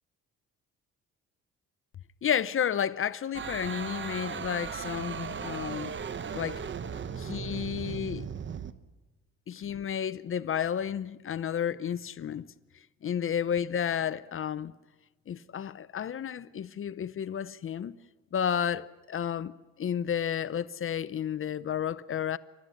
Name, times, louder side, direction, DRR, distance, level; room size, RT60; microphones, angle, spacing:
voice 1, 2.2-6.0 6.3-6.6 7.2-8.3 9.5-12.5 13.0-14.7 15.3-18.0 18.3-19.5 19.8-22.4, left 8 dB, 45° left, 0.6 m, -31 dB
sound 1, 3.3-8.7, right 7 dB, 40° right, 1.0 m, -37 dB
28.0 x 13.0 x 10.0 m
cardioid pair, 90°, 30 cm